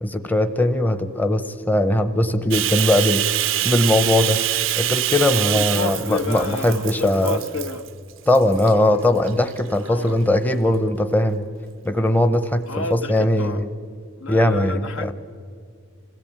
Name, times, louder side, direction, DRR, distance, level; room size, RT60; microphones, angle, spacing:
voice 1, 0.0-3.2 3.6-4.4 4.8-7.4 8.3-11.5 11.8-13.7 14.3-15.1, left 1 dB, 10° left, 9 dB, 0.8 m, -20 dB
Bathtub (filling or washing), 2.5-7.9 8.3-8.7 9.3-10.1, right 14 dB, 60° right, 0.5 m, -25 dB
voice 2, 5.5-7.8 9.8-10.2 12.7-13.6 14.2-15.1, left 3 dB, 70° left, 9 dB, 1.1 m, -30 dB
26.5 x 17.0 x 8.8 m, 2.2 s
head